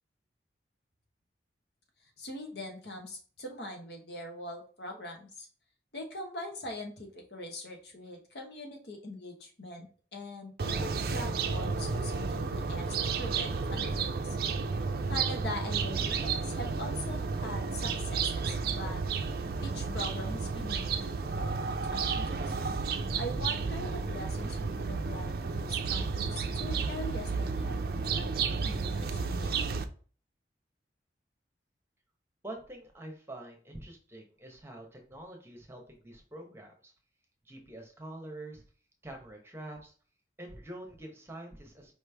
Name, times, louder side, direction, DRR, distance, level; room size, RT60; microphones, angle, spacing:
voice 1, 2.2-5.5 5.9-14.4 15.1-19.0 19.6-22.5 23.2-29.5, left 1 dB, 65° left, 3 dB, 1.2 m, -42 dB
sound 1, 10.6-29.8, right 4 dB, 55° right, 0.4 m, -32 dB
voice 2, 32.4-36.9 37.4-38.6 39.0-39.9 40.4-41.9, right 1 dB, 15° right, 2 dB, 0.9 m, -46 dB
4.8 x 3.2 x 3.4 m, 0.40 s
head